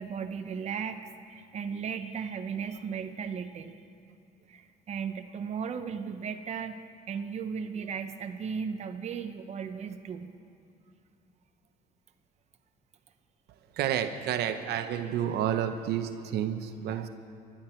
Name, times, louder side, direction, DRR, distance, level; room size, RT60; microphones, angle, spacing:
voice 1, 0.0-3.8 4.5-10.3, right 6 dB, 40° right, 7 dB, 0.9 m, -36 dB
voice 2, 13.7-17.1, right 10 dB, 75° right, 8 dB, 0.8 m, -30 dB
24.5 x 12.0 x 4.5 m, 2.5 s
cardioid pair, 110°, 17 cm